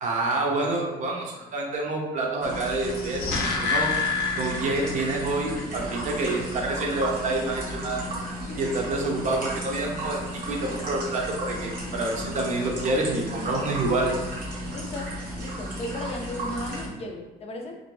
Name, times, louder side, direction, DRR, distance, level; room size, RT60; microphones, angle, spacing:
voice 1, 0.0-3.3 3.6-3.9 4.4-8.0 8.6-14.1, right 2 dB, 45° right, 0 dB, 0.6 m, -27 dB
sound 1, 2.4-16.9, equal, 65° right, 0.9 m, -34 dB
sound 2, 2.8-5.3 5.6-5.7, left 4 dB, 90° left, 0.5 m, -27 dB
voice 2, 14.7-17.8, left 1 dB, 35° left, 3 dB, 0.4 m, -36 dB
2.5 x 2.1 x 3.1 m, 1.1 s
cardioid pair, 110°, 17 cm